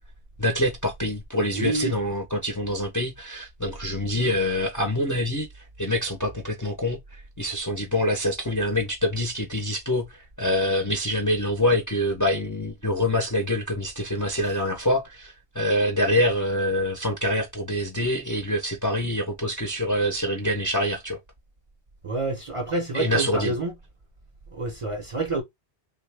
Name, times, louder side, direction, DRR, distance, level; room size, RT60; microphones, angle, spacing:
voice 1, 0.4-21.2 22.9-23.6, left 1 dB, 25° left, 0.5 m, -25 dB
voice 2, 1.5-1.9 22.0-23.7 24.5-25.4, right 2 dB, 40° right, 0.6 m, -28 dB
3.1 x 2.3 x 3.3 m
omnidirectional pair, 1.0 m